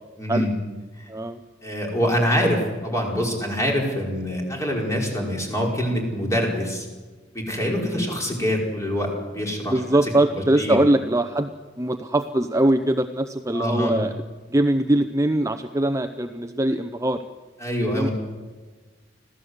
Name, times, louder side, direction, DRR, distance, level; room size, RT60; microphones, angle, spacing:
voice 1, 0.2-0.5 1.0-1.1 1.6-6.9 7.3-10.1 10.6-10.8 13.5-14.0 17.6-18.1, equal, 15° left, 0 dB, 5.1 m, -25 dB
voice 2, 1.1-1.4 7.8-8.1 9.7-11.5 11.8-14.1 14.5-17.2 17.9-18.1, right 1 dB, 15° right, 8 dB, 0.7 m, -22 dB
25.5 x 16.0 x 8.1 m, 1.3 s
head